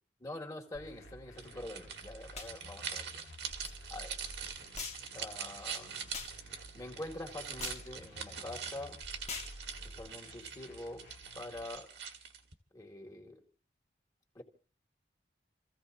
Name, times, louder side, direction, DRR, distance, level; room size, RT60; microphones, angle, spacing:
voice 1, 0.2-3.2 3.9-4.2 5.1-6.1 6.7-9.0 9.8-11.1 11.3-11.9 12.7-13.4 14.3-14.4, left 1 dB, 20° left, 0 dB, 2.2 m, -45 dB
sound 1, 0.7-11.8, equal, 65° left, 1.7 m, -53 dB
sound 2, 1.4-12.5, right 7 dB, 70° right, 1.6 m, -44 dB
sound 3, 2.3-2.5 3.6-3.7 4.7-5.1 6.1-6.4 7.6-7.9 9.3-9.6, left 5 dB, 40° left, 1.5 m, -42 dB
29.0 x 15.5 x 2.7 m, 0.40 s
head